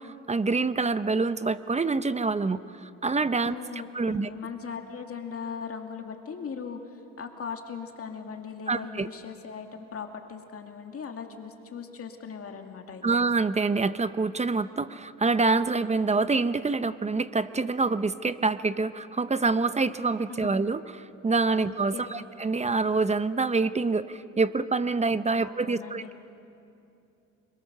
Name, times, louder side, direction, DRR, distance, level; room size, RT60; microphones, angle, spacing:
voice 1, 0.0-3.5 3.9-4.3 8.7-9.1 13.0-20.8 21.2-26.2, right 3 dB, 20° right, 14 dB, 0.7 m, -26 dB
voice 2, 3.4-13.2 20.3-20.5 21.6-22.3 25.4-26.1, left 6 dB, 50° left, 4 dB, 2.2 m, -39 dB
28.0 x 22.0 x 6.8 m, 2.7 s
cardioid pair, 90°, 30 cm